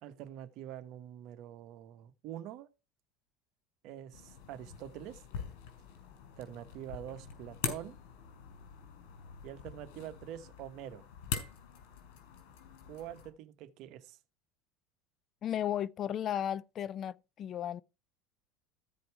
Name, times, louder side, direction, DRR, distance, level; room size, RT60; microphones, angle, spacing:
voice 1, 0.0-2.7 3.8-5.2 6.4-8.0 9.4-11.1 12.9-14.2, right 11 dB, 60° right, 1.0 m, -45 dB
sound 1, 4.1-13.3, left 7 dB, 75° left, 4.0 m, -44 dB
voice 2, 15.4-17.8, left 10 dB, 40° left, 0.4 m, -34 dB
14.0 x 5.2 x 4.6 m
supercardioid pair, 120°, 0 cm